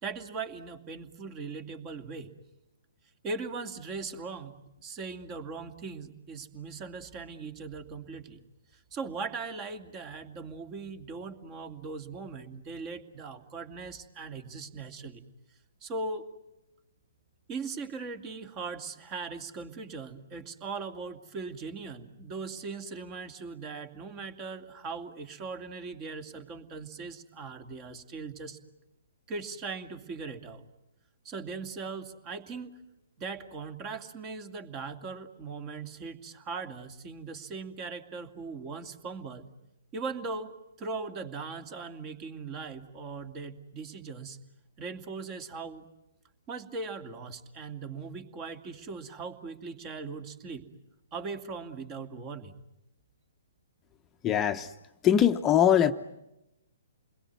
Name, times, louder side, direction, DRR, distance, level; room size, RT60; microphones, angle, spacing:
voice 1, 0.0-2.4 3.2-4.5 4.8-8.4 8.7-15.2 15.8-16.3 17.5-28.6 29.3-30.6 31.2-32.8 33.2-39.5 39.9-44.4 44.8-45.9 46.5-50.7 51.1-52.5, right 4 dB, 30° right, 9 dB, 2.5 m, -39 dB
voice 2, 54.2-54.7 55.0-55.9, left 10 dB, 20° left, 8 dB, 0.9 m, -22 dB
28.5 x 21.5 x 9.6 m, 0.91 s
hypercardioid pair, 130°, 0 cm